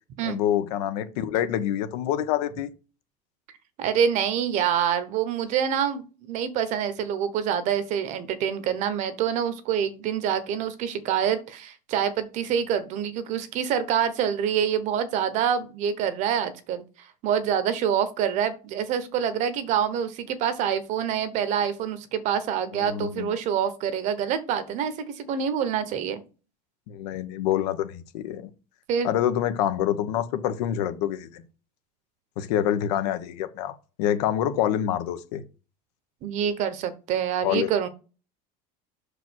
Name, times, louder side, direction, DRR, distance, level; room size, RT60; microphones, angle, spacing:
voice 1, 0.2-2.7 22.7-23.3 26.9-28.5 29.0-31.4 32.4-35.4 37.4-37.7, left 11 dB, 75° left, 1.1 m, -26 dB
voice 2, 3.8-16.8 17.2-26.2 28.9-29.1 36.2-37.9, right 8 dB, 35° right, 1.0 m, -26 dB
6.1 x 5.0 x 6.3 m
cardioid pair, 175°, 20 cm